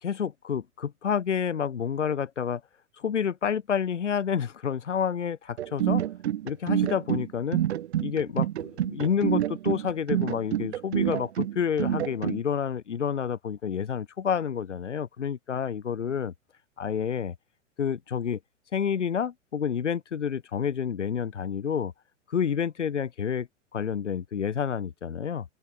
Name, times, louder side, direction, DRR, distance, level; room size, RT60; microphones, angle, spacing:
voice 1, 0.0-2.6 3.0-6.0 6.4-7.6 8.0-16.3 16.8-17.4 17.8-18.4 18.7-21.9 22.3-23.5 23.7-25.5, left 7 dB, 70° left, 5.1 m, -29 dB
sound 1, 5.6-12.4, right 12 dB, 60° right, 4.3 m, -27 dB
open air
figure-of-eight pair, 100°, 37 cm